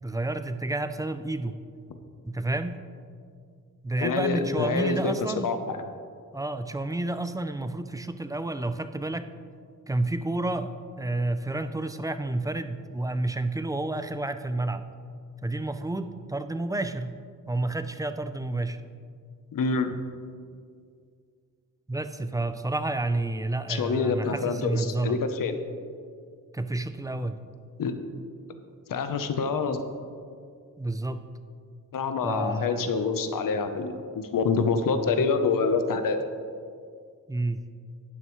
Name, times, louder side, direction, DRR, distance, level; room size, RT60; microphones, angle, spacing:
voice 1, 0.0-1.5 2.2-2.8 3.8-5.5 6.3-9.3 9.9-14.8 15.4-17.2 17.5-18.8 21.9-25.2 26.5-27.4 30.8-31.3 32.2-32.9 37.3-37.6, right 2 dB, 10° right, 10 dB, 0.5 m, -30 dB
voice 2, 4.0-5.1 5.4-5.8 19.5-20.0 23.7-25.6 27.8-27.9 28.9-29.8 31.9-36.2, left 4 dB, 70° left, 8 dB, 0.9 m, -26 dB
12.0 x 9.5 x 3.2 m, 2.2 s
cardioid pair, 85°, 34 cm